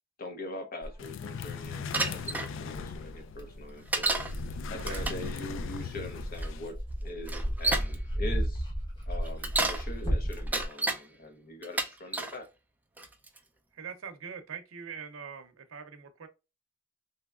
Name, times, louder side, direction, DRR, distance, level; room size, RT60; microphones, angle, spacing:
voice 1, 0.2-4.1 4.7-6.8 7.0-8.7 9.1-12.5, left 1 dB, 45° left, 0.8 m, -42 dB
Dog, 0.8-1.0 1.7-1.8 2.7-10.7, equal, 20° left, 1.0 m, -34 dB
sound 1, 1.0-6.7, left 6 dB, 65° left, 0.3 m, -40 dB
Bicycle, 1.9-2.5 3.9-4.3 4.8-5.3 6.4-6.5 7.3-7.9 9.2-9.8 10.3-11.0 11.6-12.4 13.0-13.4, right 2 dB, 10° right, 0.4 m, -30 dB
voice 2, 13.7-16.3, right 6 dB, 85° right, 0.7 m, -43 dB
3.3 x 2.8 x 2.4 m
head